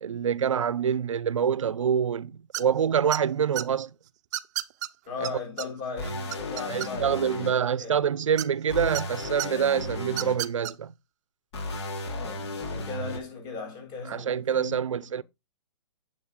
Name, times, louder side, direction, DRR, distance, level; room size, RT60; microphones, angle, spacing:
voice 1, 0.0-3.9 5.2-5.3 6.7-10.9 14.1-15.2, right 8 dB, 80° right, 0.5 m, -26 dB
sound 1, 2.5-2.8 3.1-3.6 4.3-4.9 5.2-5.3 5.6-5.7 6.0-7.2 8.4-9.0 9.4-9.5 10.1-10.7, right 15 dB, 35° right, 0.6 m, -32 dB
voice 2, 5.1-8.0 12.0-14.8 15.1-15.2, left 4 dB, 25° left, 6.9 m, -38 dB
sound 2, 6.0-7.5 8.7-10.3 11.5-13.2, left 2 dB, 60° left, 3.6 m, -34 dB
9.3 x 7.5 x 3.6 m
hypercardioid pair, 145°, 16 cm